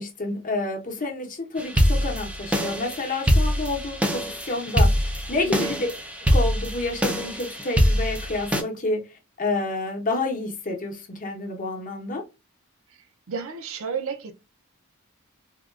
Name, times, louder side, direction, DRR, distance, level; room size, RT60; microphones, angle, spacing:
voice 1, 0.0-5.9 6.2-9.0 9.4-12.2, left 2 dB, 40° left, 0.8 m, -29 dB
sound 1, 1.6-8.6, equal, 5° right, 0.4 m, -23 dB
voice 2, 5.4-5.7 13.3-14.3, right 5 dB, 65° right, 0.5 m, -31 dB
3.5 x 2.2 x 2.4 m
head